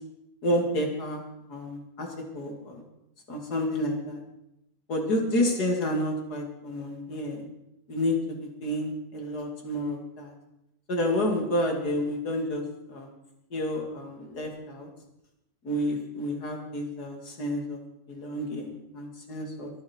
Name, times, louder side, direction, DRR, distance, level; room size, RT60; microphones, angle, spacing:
voice 1, 0.4-1.2 1.5-2.8 3.3-4.2 4.9-7.4 7.9-10.3 10.9-13.1 13.5-14.9 15.6-17.8 18.1-19.7, left 1 dB, 30° left, 2 dB, 2.3 m, -30 dB
23.0 x 9.5 x 4.4 m, 0.85 s
omnidirectional pair, 4.2 m